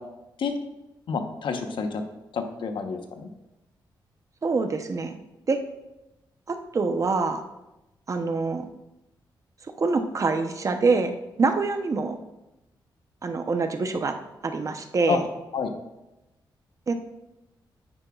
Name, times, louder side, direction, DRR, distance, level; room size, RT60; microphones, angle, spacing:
voice 1, 1.1-2.0 2.3-3.3 15.1-15.2 15.5-15.7, left 5 dB, 75° left, 5 dB, 1.0 m, -28 dB
voice 2, 4.4-5.2 5.5-5.6 6.5-7.4 8.1-8.6 9.8-12.2 13.2-14.2 14.4-15.2 16.9-17.0, right 4 dB, 40° right, 7 dB, 0.8 m, -25 dB
9.9 x 9.5 x 2.4 m, 0.95 s
wide cardioid pair, 115°, 8 cm